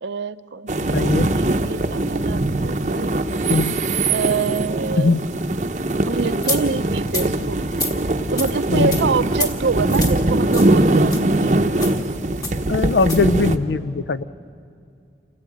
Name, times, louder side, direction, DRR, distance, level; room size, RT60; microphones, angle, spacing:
voice 1, 0.0-3.2 4.1-5.2 6.1-7.6 8.3-11.7, right 5 dB, 80° right, 14 dB, 0.5 m, -26 dB
sound 1, 0.7-13.6, right 2 dB, 40° right, 0.7 m, -21 dB
voice 2, 0.9-1.3 3.5-3.8 5.0-5.3 8.7-9.0 12.7-14.2, left 3 dB, 70° left, 15 dB, 0.5 m, -20 dB
sound 2, 6.4-6.6 7.1-7.3 7.7-7.9 8.4-8.5 8.9-9.0 9.3-9.5 9.9-10.1 10.5-10.7 11.1-11.2 11.7-12.0 12.4-12.6 13.0-13.2, left 2 dB, 20° left, 1.5 m, -27 dB
28.0 x 15.5 x 8.5 m, 2.4 s
head